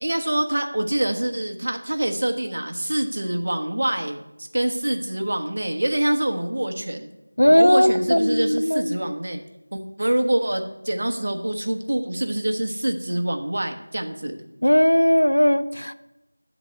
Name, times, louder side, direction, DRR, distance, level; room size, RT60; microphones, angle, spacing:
voice 1, 0.0-4.2 4.5-7.1 7.4-9.4 9.7-14.3, right 1 dB, 45° right, 5 dB, 1.1 m, -25 dB
voice 2, 7.4-9.0 14.6-15.9, equal, 85° left, 12 dB, 0.5 m, -18 dB
11.5 x 4.0 x 7.6 m, 0.95 s
figure-of-eight pair, 175°, 0 cm